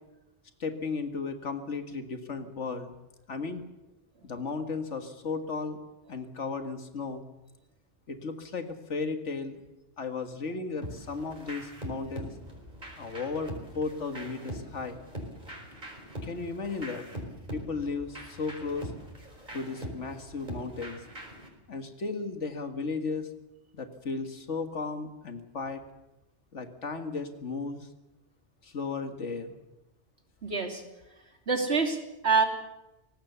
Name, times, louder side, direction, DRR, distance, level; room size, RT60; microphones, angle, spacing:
voice 1, 0.6-2.9 3.3-3.6 4.2-5.8 6.1-7.2 8.1-9.6 10.0-12.3 13.0-15.0 16.2-17.1 17.5-18.9 19.5-21.0 21.7-23.3 23.7-25.8 26.5-27.9 28.6-29.6, left 4 dB, 80° left, 7 dB, 2.0 m, -35 dB
sound 1, 10.8-21.5, equal, 40° right, 5.0 m, -42 dB
voice 2, 30.4-30.8 31.5-32.4, right 4 dB, 65° right, 3 dB, 3.2 m, -26 dB
24.5 x 18.5 x 7.0 m, 0.98 s
omnidirectional pair, 1.2 m